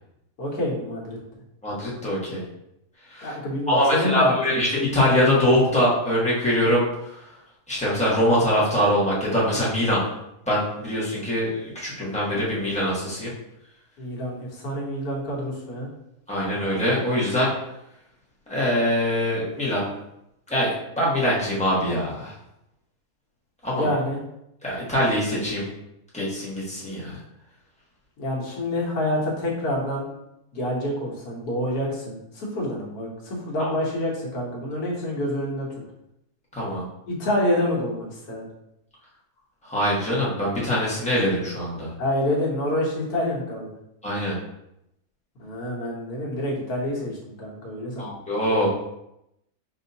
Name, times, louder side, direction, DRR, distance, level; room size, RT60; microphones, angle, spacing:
voice 1, 0.4-1.2 3.2-4.4 14.0-15.9 23.8-24.2 28.2-30.0 30.5-35.7 37.1-38.5 42.0-43.7 45.4-48.2, left 1 dB, 70° left, -3 dB, 1.5 m, -27 dB
voice 2, 1.6-2.4 3.1-3.3 3.7-7.2 7.7-10.0 10.5-13.3 16.3-17.5 18.5-19.9 20.5-22.3 23.6-23.9 24.6-25.7 26.1-27.2 33.6-33.7 36.5-36.8 39.6-41.9 44.0-44.3 48.0-48.7, equal, 5° left, -7 dB, 1.0 m, -23 dB
5.4 x 2.7 x 2.7 m, 0.84 s
omnidirectional pair, 1.7 m